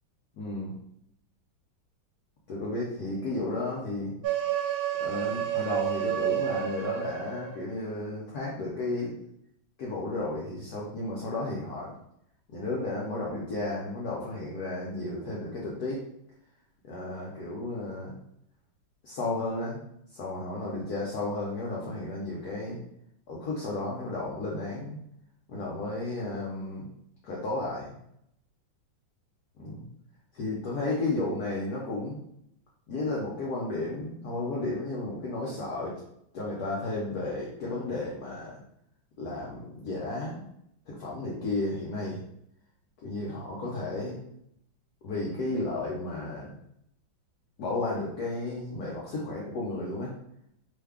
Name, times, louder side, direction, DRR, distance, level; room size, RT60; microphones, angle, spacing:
voice 1, 0.3-0.7 2.5-4.1 5.0-9.1 9.8-11.9 12.5-16.0 16.8-18.1 19.0-19.8 20.1-22.8 23.3-25.0 25.5-26.9 27.2-27.9 29.6-29.9 30.3-32.2 32.9-36.0 36.3-38.6 39.2-40.4 40.9-42.2 43.0-44.2 45.0-46.6 47.6-50.1, left 2 dB, 65° left, -5 dB, 1.0 m, -33 dB
sound 1, 4.2-7.6, right 11 dB, 80° right, 0.8 m, -30 dB
3.2 x 2.2 x 3.5 m, 0.75 s
omnidirectional pair, 2.1 m